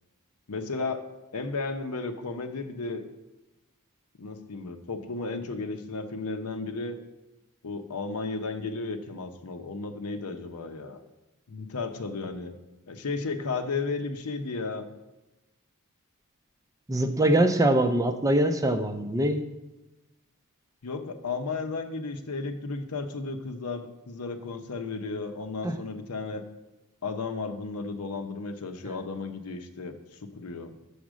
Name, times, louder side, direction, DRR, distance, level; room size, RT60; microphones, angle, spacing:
voice 1, 0.5-1.0 1.3-3.0 4.2-7.0 7.6-11.0 11.5-12.6 12.9-14.9 20.8-26.4 27.0-30.7, left 3 dB, 85° left, 7 dB, 0.8 m, -34 dB
voice 2, 16.9-19.4 25.6-25.7, right 1 dB, 15° right, 7 dB, 0.5 m, -23 dB
7.1 x 5.0 x 6.2 m, 1.0 s
head